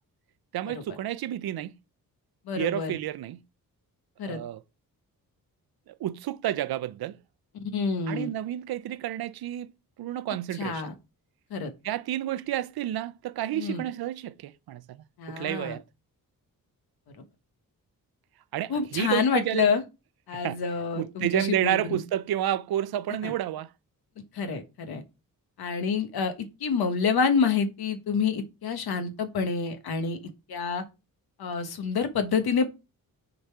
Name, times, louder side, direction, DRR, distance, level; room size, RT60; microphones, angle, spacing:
voice 1, 0.5-1.7 2.5-3.4 4.3-4.6 5.9-7.2 8.1-9.7 10.0-10.9 11.8-15.8 18.5-19.7 20.3-20.6 21.0-23.7, right 12 dB, 80° right, 0.6 m, -30 dB
voice 2, 2.5-2.9 4.2-4.4 7.7-8.3 10.6-10.9 11.5-11.7 13.5-13.8 15.2-15.8 18.7-19.8 20.3-22.0 23.2-23.3 24.3-25.0 25.6-26.3 26.6-30.2 30.5-30.8 31.4-32.7, left 5 dB, 85° left, 1.3 m, -27 dB
6.6 x 4.0 x 4.6 m
wide cardioid pair, 145°, 37 cm